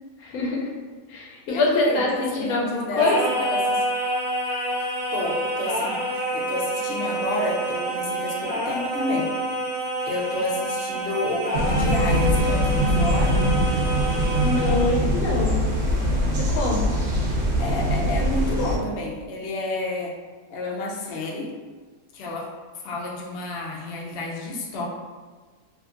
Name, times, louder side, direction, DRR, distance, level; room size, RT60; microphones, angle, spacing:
voice 1, 0.2-0.7 1.1-2.1 2.4-3.2 14.4-15.6 16.5-16.9, left 3 dB, 80° left, -2 dB, 1.1 m, -24 dB
voice 2, 1.5-3.1 3.4-3.8 5.1-9.3 10.1-13.4 17.6-20.1 20.5-21.5 22.1-22.5 22.7-24.8, left 2 dB, 65° left, -3 dB, 0.6 m, -30 dB
Singing, 3.0-15.0, right 1 dB, 30° right, 0.8 m, -28 dB
sound 1, 11.5-18.8, equal, 65° right, 0.7 m, -22 dB
2.7 x 2.4 x 2.4 m, 1.4 s
omnidirectional pair, 1.5 m